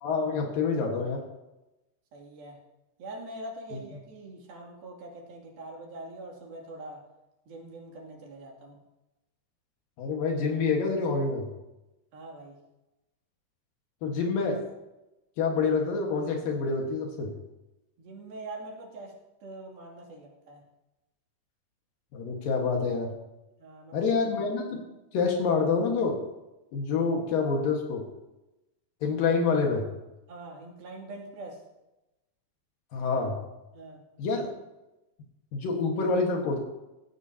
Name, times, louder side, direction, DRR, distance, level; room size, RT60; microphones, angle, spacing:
voice 1, 0.0-1.2 3.7-3.8 10.0-11.5 14.0-14.6 15.4-17.3 22.1-23.1 23.9-24.8 25.1-26.2 26.7-28.0 29.0-29.9 32.9-33.4 34.2-34.5 35.5-36.6, left 4 dB, 75° left, 1 dB, 3.2 m, -27 dB
voice 2, 2.1-2.6 3.0-7.0 7.5-8.8 12.1-12.6 18.0-19.1 19.4-20.6 23.6-24.1 30.3-31.6 33.7-34.0, right 2 dB, 90° right, -2 dB, 4.6 m, -43 dB
16.5 x 16.0 x 2.8 m, 0.99 s
omnidirectional pair, 4.1 m